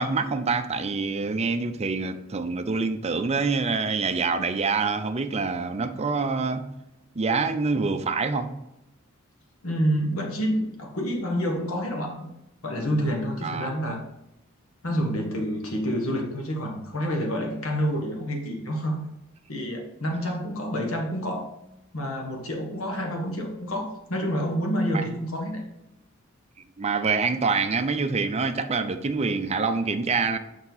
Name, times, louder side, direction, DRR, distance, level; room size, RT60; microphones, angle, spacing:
voice 1, 0.0-6.6 7.1-8.5 13.4-13.7 24.9-25.1 26.8-30.4, right 4 dB, 30° right, 9 dB, 0.5 m, -26 dB
voice 2, 9.6-12.3 12.6-14.0 14.8-19.0 19.5-21.5 21.9-25.6, equal, 75° left, 1 dB, 1.5 m, -28 dB
7.1 x 5.6 x 4.0 m, 0.90 s
head